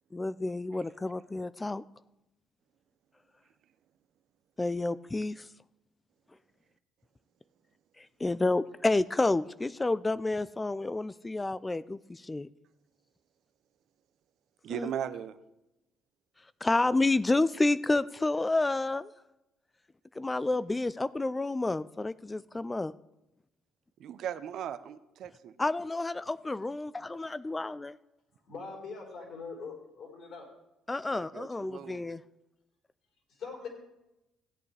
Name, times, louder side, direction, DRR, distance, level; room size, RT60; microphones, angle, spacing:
voice 1, 0.1-1.8 4.6-5.5 8.0-12.5 14.7-14.9 16.6-19.1 20.2-22.9 25.6-27.9 30.9-32.2, left 2 dB, 15° left, 16 dB, 0.3 m, -30 dB
voice 2, 14.6-15.4 24.0-25.5 31.1-32.1, right 9 dB, 65° right, 12 dB, 0.6 m, -38 dB
voice 3, 28.5-30.4 33.4-33.7, left 4 dB, 60° left, 0 dB, 4.0 m, -42 dB
15.5 x 8.5 x 3.3 m, 0.91 s
cardioid pair, 90°, 0 cm